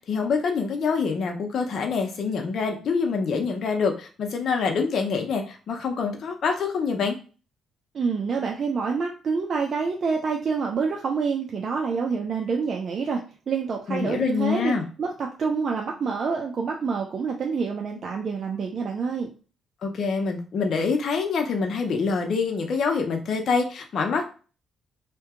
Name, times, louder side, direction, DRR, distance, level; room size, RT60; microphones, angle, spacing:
voice 1, 0.1-7.2 13.9-14.8 19.8-24.2, left 5 dB, 60° left, 3 dB, 0.6 m, -25 dB
voice 2, 7.9-19.3, right 5 dB, 50° right, 1 dB, 0.5 m, -27 dB
2.7 x 2.2 x 3.5 m, 0.36 s
cardioid pair, 90°, 0 cm